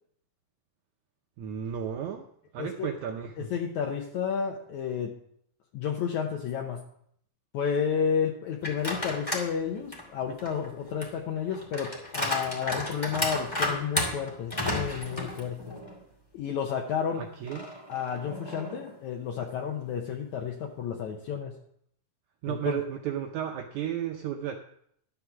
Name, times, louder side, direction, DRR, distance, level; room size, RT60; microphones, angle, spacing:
voice 1, 1.4-2.3 2.5-3.5 17.2-17.7 22.4-24.5, right 9 dB, 70° right, 3 dB, 2.0 m, -33 dB
voice 2, 2.6-2.9 3.4-5.1 5.7-6.8 7.5-15.8 16.3-17.2 17.9-21.6 22.5-22.8, left 7 dB, 70° left, 1 dB, 2.2 m, -31 dB
sound 1, 8.6-9.5 9.9-16.0 16.4-16.5 17.5-18.9, left 1 dB, 10° left, 1.6 m, -33 dB
12.0 x 7.2 x 6.1 m, 0.68 s
omnidirectional pair, 3.8 m